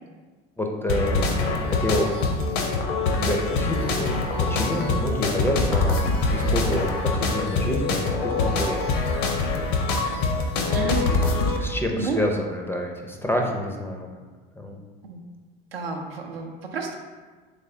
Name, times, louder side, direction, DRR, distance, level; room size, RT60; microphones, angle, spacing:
voice 1, 0.6-2.3 3.0-4.0 4.4-8.8 11.6-14.1 14.6-14.8, left 1 dB, 10° left, 1 dB, 0.4 m, -28 dB
sound 1, 0.9-11.6, left 3 dB, 60° left, 0.6 m, -24 dB
voice 2, 10.7-12.2 15.0-15.2 15.7-17.0, right 4 dB, 90° right, 1 dB, 0.5 m, -31 dB
3.3 x 3.2 x 2.6 m, 1.4 s
hypercardioid pair, 70°, 29 cm